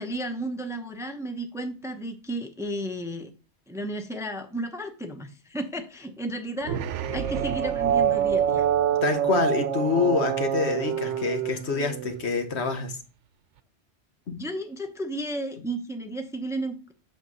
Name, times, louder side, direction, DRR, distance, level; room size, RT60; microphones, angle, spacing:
voice 1, 0.0-3.3 3.7-8.6 14.4-16.9, right 1 dB, 5° right, 0.8 m, -33 dB
sound 1, 6.6-12.2, right 9 dB, 90° right, 0.9 m, -26 dB
voice 2, 9.0-13.0 14.3-14.4, left 5 dB, 70° left, 1.3 m, -26 dB
8.3 x 3.4 x 6.2 m
omnidirectional pair, 1.2 m